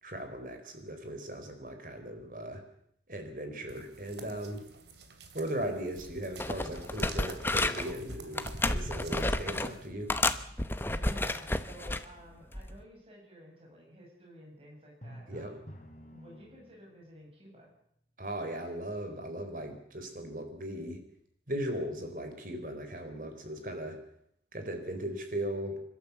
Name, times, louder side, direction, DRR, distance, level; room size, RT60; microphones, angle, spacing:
voice 1, 0.0-2.6 3.1-4.6 5.3-10.1 15.3-15.5 18.2-21.0 21.5-24.0 24.5-25.8, right 1 dB, 50° right, 6 dB, 4.1 m, -38 dB
sound 1, 3.7-9.9, right 2 dB, 75° right, 3.1 m, -47 dB
sound 2, 6.0-6.1 6.4-7.9 8.4-9.7 10.1-12.1 12.5-12.8, left 2 dB, 10° left, 0.9 m, -31 dB
voice 2, 10.5-15.7 16.1-17.7, equal, 30° right, -1 dB, 7.5 m, -52 dB
Drum, 15.0-17.0, equal, 40° left, 3.1 m, -49 dB
27.5 x 13.0 x 8.4 m, 0.71 s
head